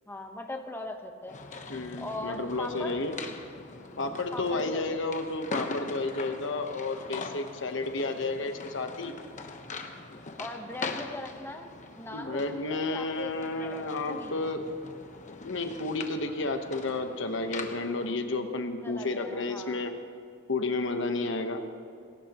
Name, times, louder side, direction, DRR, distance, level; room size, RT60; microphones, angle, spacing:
voice 1, 0.1-1.4 2.0-3.0 4.3-5.0 10.4-14.3 18.8-19.8, left 1 dB, 10° left, 3 dB, 1.1 m, -40 dB
sound 1, 1.3-18.1, left 3 dB, 40° left, 1.1 m, -42 dB
voice 2, 1.7-3.2 4.0-9.1 12.1-14.6 15.4-19.9 20.5-21.6, left 3 dB, 65° left, 6 dB, 1.1 m, -31 dB
20.0 x 17.5 x 3.0 m, 2.4 s
head